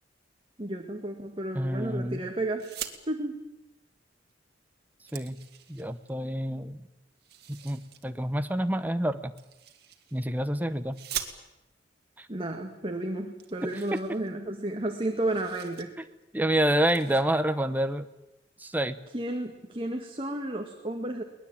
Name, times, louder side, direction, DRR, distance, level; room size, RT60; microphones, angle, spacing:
voice 1, 0.6-2.6 3.1-3.4 12.3-15.9 19.1-21.2, right 1 dB, 30° right, 3 dB, 1.9 m, -32 dB
voice 2, 1.5-2.2 5.1-5.4 5.7-6.9 7.5-9.3 10.1-11.0 12.2-12.3 13.6-14.0 16.3-18.1 18.6-19.0, right 1 dB, 10° right, 9 dB, 1.0 m, -28 dB
sound 1, 2.5-3.0 4.3-4.4 4.7-6.1 7.2-8.1 9.4-10.3 10.9-11.8 12.7-12.8 13.0-13.1 13.4-14.7 15.0-15.9 16.2-16.4 16.8-17.2, right 10 dB, 60° right, 2.2 m, -42 dB
23.0 x 20.0 x 8.9 m, 0.95 s
head